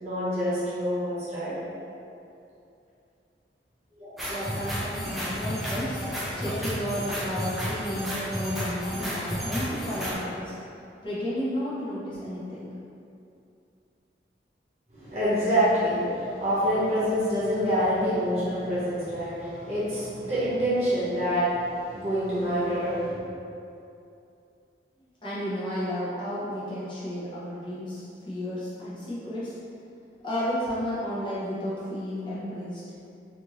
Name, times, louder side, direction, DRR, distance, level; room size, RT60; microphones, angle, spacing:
voice 1, 0.0-1.5 4.0-4.3 14.9-23.1, equal, 40° right, -11 dB, 1.0 m, -26 dB
sound 1, 4.2-10.1, equal, ahead, 0.4 m, -32 dB
voice 2, 4.3-6.0 6.4-10.5 11.0-12.7 25.2-29.6 30.2-32.8, equal, 25° left, -10 dB, 0.7 m, -32 dB
2.6 x 2.5 x 3.0 m, 2.6 s
head